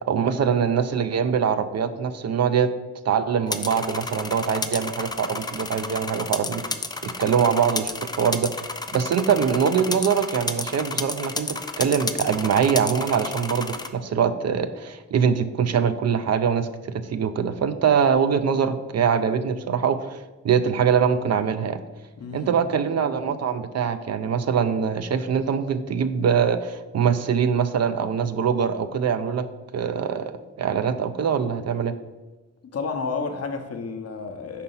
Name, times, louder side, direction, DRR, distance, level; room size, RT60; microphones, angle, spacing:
voice 1, 0.0-2.7 3.0-6.8 7.0-8.5 8.9-21.8 22.3-29.4 29.7-31.9, right 7 dB, 60° right, 0.5 m, -23 dB
sound 1, 3.5-13.9, left 3 dB, 15° left, 0.4 m, -31 dB
voice 2, 22.2-22.6 22.8-22.9 32.7-34.6, left 4 dB, 55° left, 0.8 m, -31 dB
5.3 x 4.2 x 5.5 m
cardioid pair, 95°, 29 cm